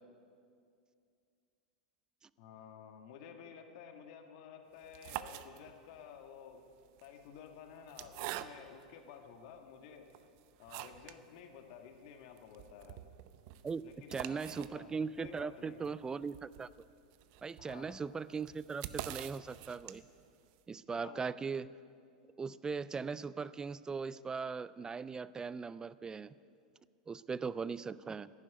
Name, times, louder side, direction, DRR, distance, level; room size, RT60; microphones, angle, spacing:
voice 1, 2.4-6.6 7.0-10.1 10.6-13.0 13.8-15.9 17.6-18.0 20.9-21.3, left 7 dB, 55° left, 5 dB, 1.6 m, -53 dB
sound 1, 4.8-6.0 6.8-8.9 9.5-9.6 10.1-11.2 11.6-11.7 11.9-12.0 12.4-20.3, right 14 dB, 50° right, 0.6 m, -46 dB
voice 2, 14.1-16.7 17.4-20.0 20.7-21.7 22.4-26.3 27.1-28.3, right 5 dB, 15° right, 18 dB, 0.3 m, -39 dB
11.5 x 10.0 x 9.3 m, 2.3 s
hypercardioid pair, 100°, 4 cm